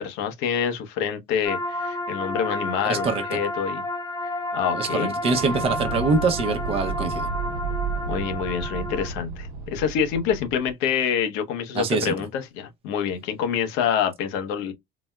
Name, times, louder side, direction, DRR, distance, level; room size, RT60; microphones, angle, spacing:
voice 1, 0.0-3.8 4.5-5.1 8.1-14.7, left 8 dB, 85° left, 0.9 m, -26 dB
sound 1, 1.4-9.1, left 1 dB, 25° left, 0.6 m, -31 dB
voice 2, 2.9-3.2 4.7-7.3 11.7-12.1, right 4 dB, 30° right, 0.7 m, -24 dB
Explosion, 5.2-10.7, right 5 dB, 70° right, 0.9 m, -32 dB
4.0 x 2.0 x 2.3 m
cardioid pair, 155°, 19 cm